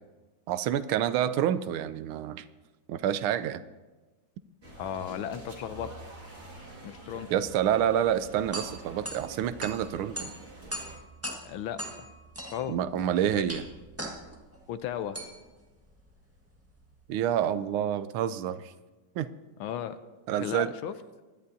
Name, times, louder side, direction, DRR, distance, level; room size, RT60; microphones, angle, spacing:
voice 1, 0.5-2.4 2.9-3.6 7.3-10.3 12.7-13.6 17.1-18.7 19.2-19.3 20.3-20.7, right 10 dB, 80° right, 13 dB, 1.4 m, -28 dB
sound 1, 4.6-11.0, right 1 dB, 30° right, 2.3 m, -46 dB
voice 2, 4.8-5.9 6.8-7.3 11.4-12.1 12.5-12.8 13.3-13.5 14.7-15.2 19.6-20.0 20.3-20.9, left 10 dB, 75° left, 11 dB, 1.4 m, -35 dB
sound 2, 8.5-17.2, right 1 dB, 10° right, 1.2 m, -41 dB
24.0 x 11.5 x 2.7 m, 1.2 s
omnidirectional pair, 2.4 m